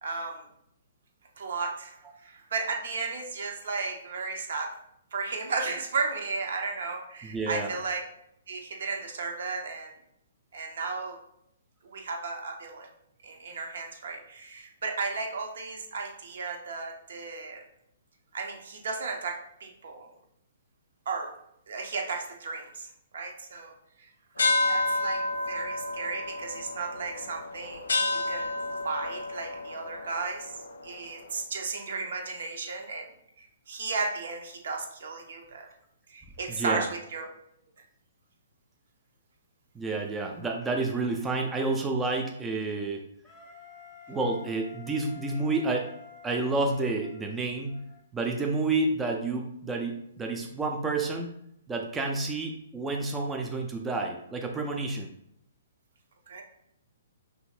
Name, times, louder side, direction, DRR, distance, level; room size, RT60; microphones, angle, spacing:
voice 1, 0.0-0.4 1.4-4.7 5.1-8.0 8.5-9.9 10.5-11.2 11.8-12.9 13.2-17.6 18.3-20.1 21.1-21.3 21.7-24.1 24.4-28.5 28.8-30.5 30.8-33.1 33.4-35.7 36.1-37.3 56.3-56.4, right 4 dB, 60° right, 3 dB, 0.6 m, -34 dB
voice 2, 7.2-7.7 36.6-36.9 39.8-43.0 44.1-45.9 46.2-47.8 48.1-51.3 51.7-55.1, right 3 dB, 10° right, 2 dB, 0.3 m, -29 dB
sound 1, 24.4-31.2, left 2 dB, 70° left, 0.4 m, -30 dB
Wind instrument woodwind instrument, 43.2-48.0, left 6 dB, 15° left, 0.7 m, -50 dB
2.7 x 2.5 x 3.1 m, 0.74 s
figure-of-eight pair, 125°, 0 cm